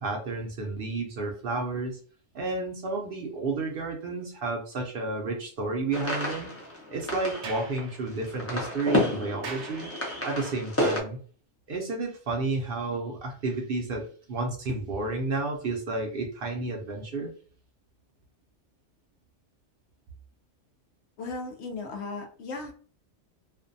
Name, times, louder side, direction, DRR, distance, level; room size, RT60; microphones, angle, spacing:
voice 1, 0.0-2.0 2.3-6.5 6.9-9.9 10.2-11.2 11.7-17.3, right 3 dB, 60° right, 1 dB, 0.7 m, -31 dB
sound 1, 5.9-11.0, left 1 dB, 20° left, 0.4 m, -30 dB
Sliding door, 7.2-10.5, right 4 dB, 85° right, 0.9 m, -44 dB
voice 2, 21.2-22.7, left 3 dB, 70° left, 4 dB, 0.8 m, -36 dB
2.5 x 2.2 x 2.6 m, 0.43 s
omnidirectional pair, 1.2 m